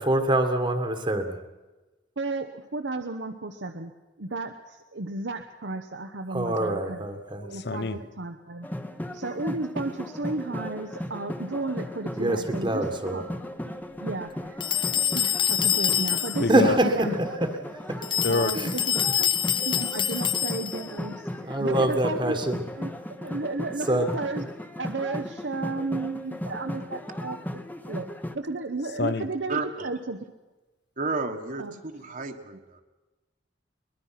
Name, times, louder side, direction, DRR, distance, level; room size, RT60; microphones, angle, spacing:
voice 1, 0.0-1.4 6.3-7.5 12.2-13.2 16.5-17.5 18.5-18.7 21.5-22.6 23.9-24.1, right 1 dB, 25° right, 6 dB, 1.5 m, -25 dB
voice 2, 2.2-3.9 4.2-8.7 9.1-13.3 14.0-14.7 15.1-17.2 18.3-19.3 19.6-22.4 22.8-22.9 23.2-24.4 24.8-28.1 28.3-30.2 31.6-31.7, right 3 dB, 70° right, 6 dB, 1.0 m, -33 dB
voice 3, 7.5-8.0 16.4-16.8 18.2-18.5 29.0-29.3, left 3 dB, 65° left, 15 dB, 0.9 m, -26 dB
sound 1, 8.6-28.4, left 1 dB, 10° left, 1.1 m, -36 dB
sound 2, 14.6-16.6 18.0-20.9, left 9 dB, 25° left, 0.6 m, -26 dB
voice 4, 29.5-29.9 31.0-32.8, right 3 dB, 45° right, 4 dB, 1.5 m, -32 dB
23.0 x 20.5 x 5.9 m, 1.1 s
head